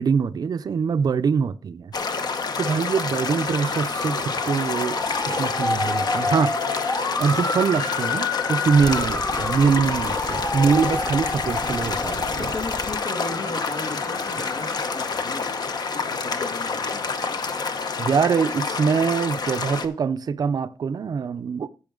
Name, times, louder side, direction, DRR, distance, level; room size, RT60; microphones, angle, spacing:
voice 1, 0.0-1.9 2.6-6.6 7.2-12.5 18.0-21.7, right 6 dB, 50° right, 0.5 m, -23 dB
sound 1, 1.9-19.9, left 4 dB, 50° left, 0.9 m, -28 dB
Motor vehicle (road) / Siren, 2.9-15.6, left 3 dB, 35° left, 1.4 m, -30 dB
voice 2, 3.4-3.8 12.2-14.7 14.9-15.5 16.1-17.0, left 2 dB, 75° left, 2.3 m, -36 dB
sound 2, 8.8-13.0, left 2 dB, 15° left, 0.4 m, -37 dB
15.5 x 5.6 x 3.8 m
cardioid pair, 105°, 9 cm